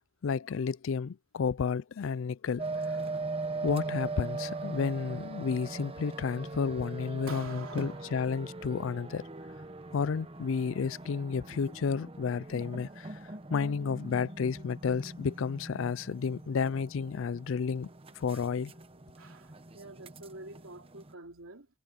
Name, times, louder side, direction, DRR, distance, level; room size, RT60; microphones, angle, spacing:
voice 1, 0.2-3.0 3.6-9.3 9.9-17.9 18.1-18.7, left 5 dB, 65° left, 0.4 m, -32 dB
sound 1, 2.6-21.1, right 3 dB, 25° right, 1.1 m, -41 dB
voice 2, 7.3-8.2 19.2-21.7, right 3 dB, 80° right, 3.1 m, -47 dB
head